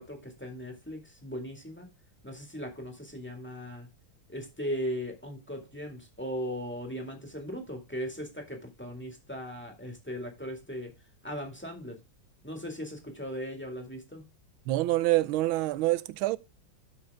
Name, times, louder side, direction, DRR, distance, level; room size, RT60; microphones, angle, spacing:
voice 1, 0.0-1.9 2.2-3.9 4.3-10.9 11.2-12.0 12.4-14.3, equal, 5° left, 1.8 m, -38 dB
voice 2, 14.7-16.4, right 17 dB, 85° right, 1.4 m, -26 dB
12.5 x 5.0 x 3.5 m
omnidirectional pair, 2.2 m